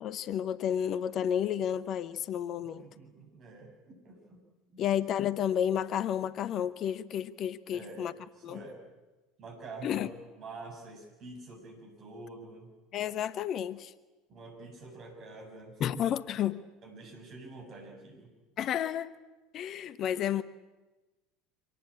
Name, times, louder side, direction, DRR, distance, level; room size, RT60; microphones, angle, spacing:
voice 1, 0.0-2.9 4.8-8.1 8.4-8.6 9.8-10.1 12.9-13.9 15.8-16.6 18.6-19.1 19.5-20.4, left 10 dB, 40° left, 16 dB, 0.9 m, -31 dB
voice 2, 2.8-4.4 4.7-4.8 7.7-8.8 9.4-10.1 10.4-12.7 14.3-15.8 16.8-18.3, right 3 dB, 40° right, 3 dB, 7.6 m, -47 dB
25.0 x 19.0 x 8.7 m, 1.2 s
figure-of-eight pair, 70°, 0 cm